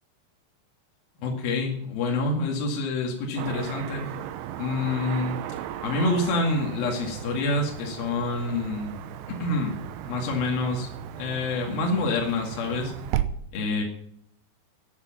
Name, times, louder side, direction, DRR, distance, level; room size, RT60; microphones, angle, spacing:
voice 1, 1.2-4.1 4.5-5.4 5.8-9.1 9.4-9.8 10.0-10.9 11.2-12.9 13.5-13.8, left 2 dB, 65° left, 0 dB, 3.9 m, -27 dB
Car passing by / Traffic noise roadway noise, 3.4-13.2, right 11 dB, 85° right, 3.1 m, -36 dB
14.5 x 10.5 x 5.8 m, 0.68 s
omnidirectional pair, 4.9 m